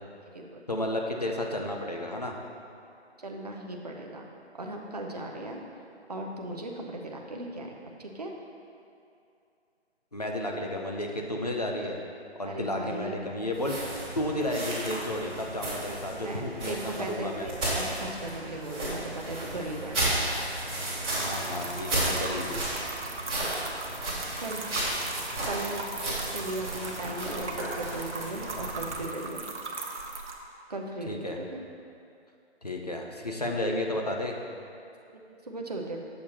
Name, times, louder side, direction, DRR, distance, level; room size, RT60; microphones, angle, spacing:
voice 1, 0.7-2.4 10.1-12.0 12.4-13.8 14.2-17.5 21.2-22.6 31.1-31.4 32.6-34.4, left 1 dB, 35° left, 1 dB, 0.4 m, -32 dB
voice 2, 3.2-4.3 4.6-5.6 6.1-7.7 8.0-8.3 12.4-13.3 16.1-19.0 19.3-20.0 24.4-24.6 25.4-29.5 30.7-31.6 35.1-36.0, right 1 dB, 35° right, 0 dB, 0.5 m, -37 dB
sound 1, 13.5-29.0, right 1 dB, 5° right, 0.9 m, -33 dB
sound 2, 21.1-30.3, right 3 dB, 85° right, 1.0 m, -39 dB
7.1 x 6.4 x 2.8 m, 2.5 s
hypercardioid pair, 170°, 34 cm